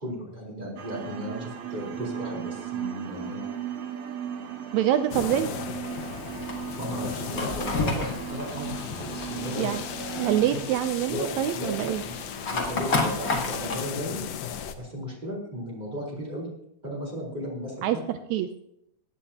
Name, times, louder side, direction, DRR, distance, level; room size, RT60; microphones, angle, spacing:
voice 1, 0.0-3.5 6.7-9.7 10.5-10.6 11.1-14.4 14.8-16.5 16.8-18.0, equal, 15° right, -3 dB, 4.2 m, -35 dB
sound 1, 0.8-10.8, right 9 dB, 65° right, 1.7 m, -37 dB
voice 2, 4.7-5.5 9.6-9.8 10.2-12.0 17.8-18.5, right 11 dB, 85° right, 9 dB, 1.6 m, -25 dB
sound 2, 5.1-14.8, left 9 dB, 75° left, 2.3 m, -37 dB
Fire, 5.9-13.7, left 3 dB, 35° left, 1.6 m, -32 dB
20.5 x 10.0 x 2.9 m, 0.76 s
omnidirectional pair, 3.8 m